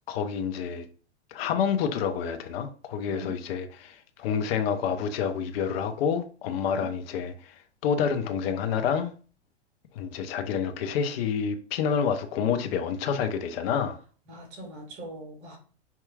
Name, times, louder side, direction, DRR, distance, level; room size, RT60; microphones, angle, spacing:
voice 1, 0.1-0.9 1.3-7.6 7.8-9.1 9.9-14.0, left 7 dB, 55° left, 0.7 m, -28 dB
voice 2, 14.3-15.6, right 1 dB, 40° right, 1.8 m, -42 dB
4.6 x 2.9 x 2.3 m
hypercardioid pair, 120°, 35 cm